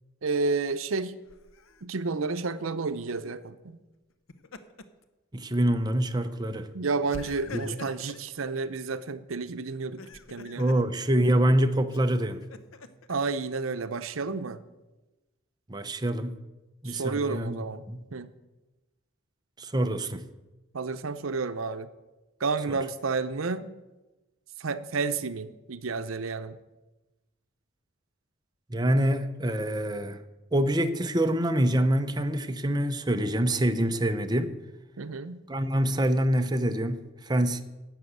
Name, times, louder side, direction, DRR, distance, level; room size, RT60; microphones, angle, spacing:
voice 1, 0.2-1.2 1.8-3.8 6.7-10.0 10.3-10.7 13.1-14.6 16.8-17.8 18.1-18.3 20.7-21.9 22.4-23.7 24.6-26.6 35.0-35.4, right 4 dB, 85° right, 0.7 m, -31 dB
Laughter, 1.3-1.8 4.1-5.0 5.5-5.6 7.1-8.3 9.8-10.8 11.9-13.2, left 3 dB, 85° left, 0.9 m, -45 dB
voice 2, 5.3-6.7 7.5-7.8 10.6-12.4 15.7-16.4 16.8-17.6 17.9-18.1 19.6-20.2 22.7-22.8 28.7-30.2 30.5-34.6 35.5-37.6, right 1 dB, 20° right, 0.7 m, -26 dB
11.5 x 8.0 x 8.0 m
head